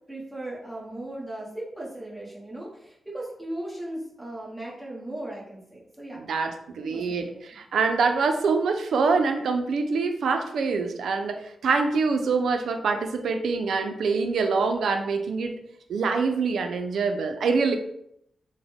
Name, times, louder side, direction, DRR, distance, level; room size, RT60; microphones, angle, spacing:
voice 1, 0.1-6.2 6.8-7.7, right 1 dB, 5° right, -6 dB, 1.1 m, -37 dB
voice 2, 6.1-15.6 15.9-17.8, right 4 dB, 85° right, 6 dB, 0.4 m, -25 dB
3.5 x 2.1 x 3.5 m, 0.75 s
cardioid pair, 80°, 0 cm